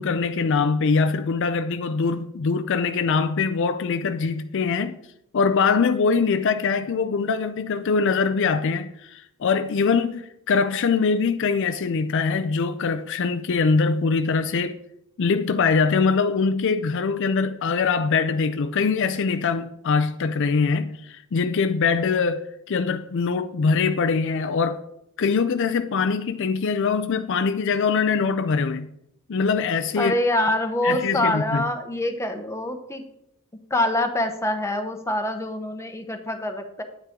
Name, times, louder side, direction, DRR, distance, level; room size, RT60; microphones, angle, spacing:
voice 1, 0.0-5.0 5.3-14.8 15.2-24.8 25.2-28.9 29.3-30.1 30.8-31.7, left 5 dB, 55° left, 0.4 m, -23 dB
voice 2, 30.0-33.0 33.7-36.8, left 1 dB, 10° left, 0.9 m, -25 dB
9.5 x 9.5 x 3.7 m
head